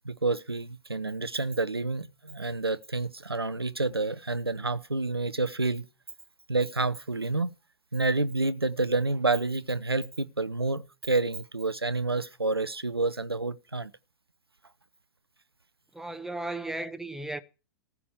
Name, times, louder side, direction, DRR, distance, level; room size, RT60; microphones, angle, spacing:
voice 1, 0.0-5.9 6.5-7.5 7.9-13.9, right 3 dB, 85° right, 0.6 m, -29 dB
voice 2, 15.9-17.4, right 2 dB, 5° right, 0.8 m, -35 dB
14.5 x 5.1 x 8.0 m
figure-of-eight pair, 95°, 12 cm